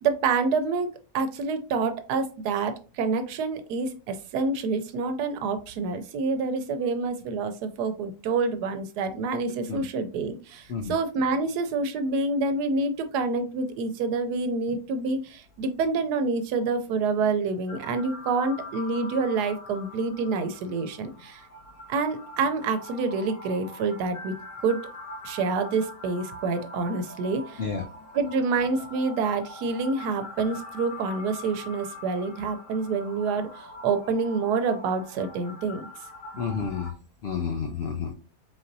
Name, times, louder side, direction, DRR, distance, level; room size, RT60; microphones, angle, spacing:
voice 1, 0.0-21.4 21.9-24.3 24.6-24.8 25.2-27.6 28.1-35.9, right 4 dB, 90° right, 8 dB, 1.2 m, -27 dB
sound 1, 17.7-36.9, left 2 dB, 45° left, 0.8 m, -43 dB
voice 2, 36.4-36.9 37.2-38.1, left 6 dB, 75° left, 3 dB, 0.6 m, -30 dB
4.1 x 3.9 x 2.6 m, 0.34 s
omnidirectional pair, 1.7 m